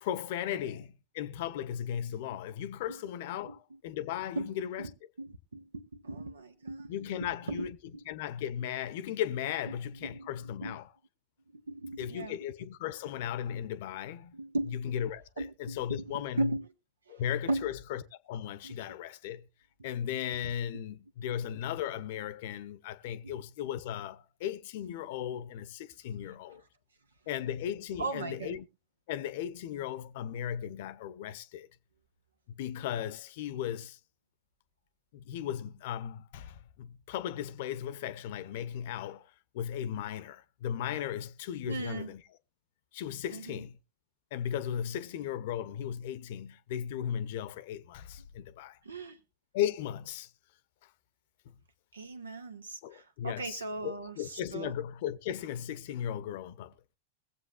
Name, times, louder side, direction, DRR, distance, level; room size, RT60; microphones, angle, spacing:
voice 1, 0.0-4.8 6.9-7.8 8.1-10.9 12.0-14.4 14.7-16.6 17.1-19.4 19.8-26.6 27.3-28.7 29.1-31.7 32.5-34.0 35.1-39.3 39.5-42.2 42.9-43.8 44.3-48.8 49.5-50.3 51.5-51.6 52.8-56.7, left 10 dB, 50° left, 0.8 m, -36 dB
voice 2, 5.2-6.9 7.2-7.7 9.6-10.3 10.6-10.8 11.5-12.4 14.3-14.8 15.4-16.7 17.1-17.2 17.5-17.7 18.6-18.8 23.2-23.3 28.0-28.6 41.7-42.1 43.3-43.6 48.8-49.2 51.9-54.7, right 2 dB, 75° right, 1.2 m, -37 dB
22.5 x 7.9 x 2.3 m
figure-of-eight pair, 90°, 0 cm